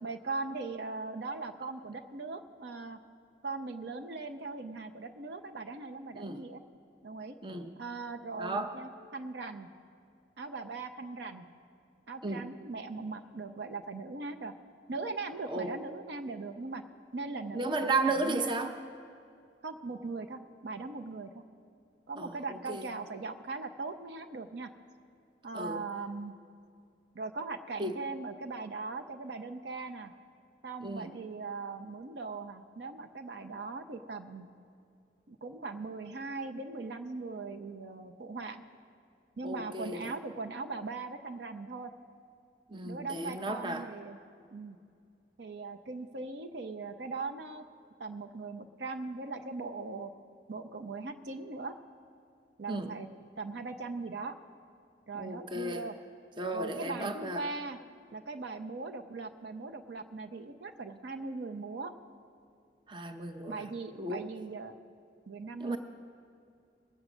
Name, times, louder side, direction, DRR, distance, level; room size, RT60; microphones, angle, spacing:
voice 1, 0.0-3.0 3.4-6.6 7.0-7.4 7.8-9.7 10.4-11.5 12.1-14.5 14.9-16.8 17.1-18.5 19.6-21.4 22.1-24.7 25.4-26.3 27.1-30.1 30.6-34.5 35.3-38.6 39.4-41.9 42.8-44.2 44.5-44.8 45.4-47.6 48.0-50.1 50.5-51.8 52.6-53.1 53.4-54.3 55.1-56.0 56.5-57.8 58.1-61.9 63.5-64.7 65.3-65.8, right 3 dB, 65° right, 7 dB, 0.6 m, -40 dB
voice 2, 8.4-8.7 12.2-12.4 15.5-15.7 17.5-18.7 22.2-22.3 22.7-22.8 25.5-25.8 27.8-27.9 30.8-31.1 39.4-40.1 42.7-43.8 52.7-52.9 55.1-55.8 56.4-57.4 62.9-63.6 64.0-64.2 65.6-65.8, right 2 dB, 25° right, 6 dB, 0.6 m, -34 dB
20.5 x 7.8 x 6.1 m, 2.4 s
head